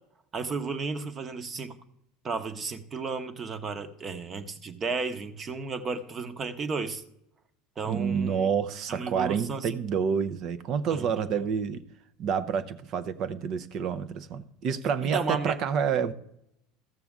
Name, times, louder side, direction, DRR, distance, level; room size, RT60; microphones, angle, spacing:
voice 1, 0.3-1.8 2.2-7.0 7.8-8.5 8.9-9.8 10.9-11.4 15.0-15.6, right 4 dB, 35° right, 10 dB, 1.0 m, -33 dB
voice 2, 7.8-11.8 12.2-16.1, right 7 dB, 50° right, 12 dB, 0.7 m, -28 dB
14.0 x 6.9 x 3.6 m, 0.79 s
hypercardioid pair, 80°, 0 cm